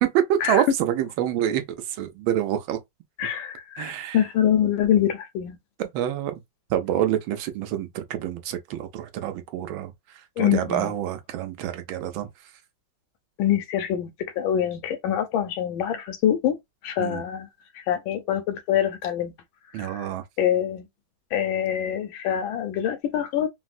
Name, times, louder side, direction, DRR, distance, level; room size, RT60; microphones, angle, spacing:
voice 1, 0.0-2.8 3.8-4.2 5.8-6.3 6.7-9.9 10.4-12.3 17.0-17.2 19.7-20.2, right 11 dB, 85° right, 1.4 m, -26 dB
voice 2, 3.2-5.6 10.4-10.9 13.4-14.1 14.3-16.6 16.8-17.5 17.7-19.3 19.8-20.1 20.4-20.9 21.3-23.5, left 10 dB, 80° left, 1.5 m, -25 dB
3.9 x 2.0 x 2.4 m
omnidirectional pair, 2.2 m